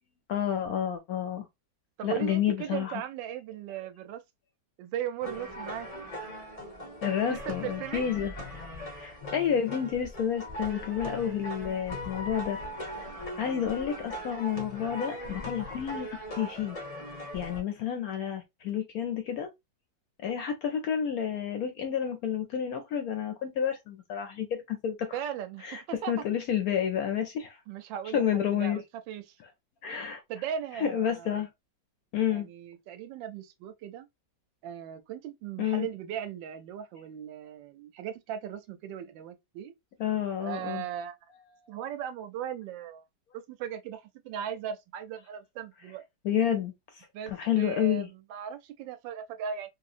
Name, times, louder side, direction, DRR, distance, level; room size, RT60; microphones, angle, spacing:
voice 1, 0.3-1.5 2.0-3.0 7.0-8.3 8.9-12.6 13.4-16.1 16.3-16.8 17.3-19.5 20.2-25.2 25.6-25.8 26.1-27.6 28.1-28.8 29.8-30.2 30.7-31.5 32.1-32.5 35.6-35.9 40.0-40.8 46.2-48.1, left 9 dB, 70° left, 0.9 m, -30 dB
voice 2, 2.0-4.2 4.8-5.9 7.3-8.1 25.1-25.6 26.0-26.1 27.7-29.3 30.3-31.4 32.3-34.1 34.6-39.7 40.4-41.2 41.7-43.0 43.3-46.0 47.1-49.7, right 9 dB, 80° right, 1.3 m, -38 dB
sound 1, 5.2-17.6, equal, 45° left, 0.4 m, -40 dB
3.0 x 2.8 x 2.4 m
omnidirectional pair, 2.0 m